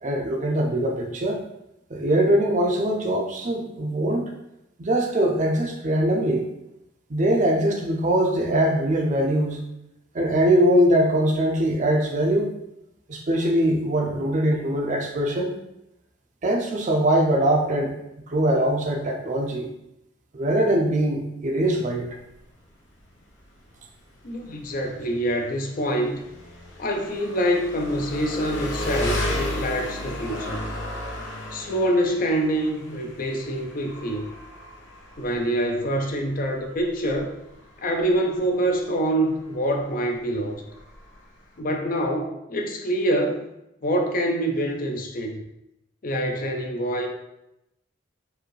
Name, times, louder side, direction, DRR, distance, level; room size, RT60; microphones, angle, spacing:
voice 1, 0.0-1.4 1.9-4.3 4.8-6.4 7.1-9.6 10.1-12.5 13.1-15.5 16.4-17.9 18.3-19.7 20.3-22.1, right 1 dB, 40° right, 2 dB, 0.5 m, -22 dB
Engine, 22.0-41.6, left 1 dB, 80° left, 0.7 m, -35 dB
voice 2, 24.2-26.2 26.8-30.6 31.5-34.3 35.2-37.3 37.8-40.6 41.6-43.4 43.8-45.4 46.0-47.1, right 1 dB, 45° left, 3 dB, 0.5 m, -25 dB
4.7 x 2.6 x 3.1 m, 0.86 s
head